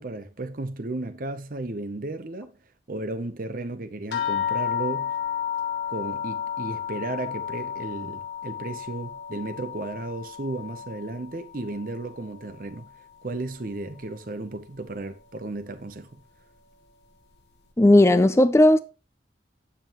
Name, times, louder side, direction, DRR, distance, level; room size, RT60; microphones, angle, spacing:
voice 1, 0.0-2.6 2.9-5.1 5.9-12.9 13.2-16.2, right 2 dB, 50° right, 0.7 m, -34 dB
sound 1, 4.1-12.9 13.2-14.1 14.9-15.0 15.4-15.5, left 9 dB, 80° left, 1.3 m, -32 dB
voice 2, 17.8-18.8, left 1 dB, 15° left, 0.4 m, -15 dB
9.1 x 7.2 x 3.0 m
head